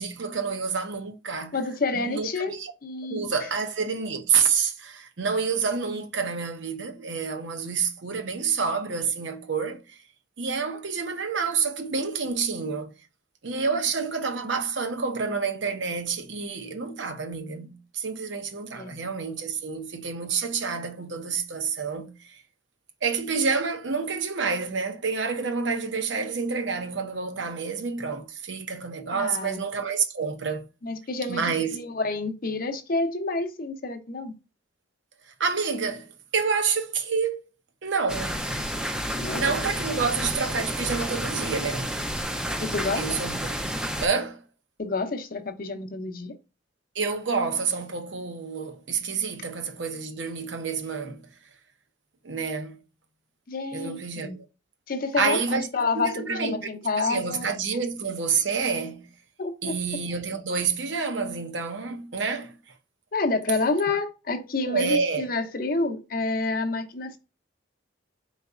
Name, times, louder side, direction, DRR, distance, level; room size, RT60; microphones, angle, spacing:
voice 1, 0.0-1.5 2.0-2.7 3.1-10.0 10.4-12.9 13.4-22.4 23.0-30.6 31.3-31.8 35.3-37.4 37.8-38.4 39.3-42.0 43.0-43.5 44.0-44.4 46.9-51.3 52.2-52.8 53.7-54.4 55.2-55.7 55.9-56.7 57.0-59.1 59.6-62.6 64.7-65.2, right 5 dB, 70° right, 0.8 m, -28 dB
voice 2, 1.5-2.6 2.8-3.2 13.7-13.8 18.7-19.0 29.1-29.6 30.8-34.3 39.1-39.4 42.6-43.2 44.8-46.4 53.5-54.4 54.9-57.5 59.4-59.7 63.1-67.2, left 3 dB, 45° left, 0.6 m, -29 dB
sound 1, 38.1-44.1, equal, 5° right, 0.4 m, -30 dB
4.0 x 3.9 x 2.3 m
head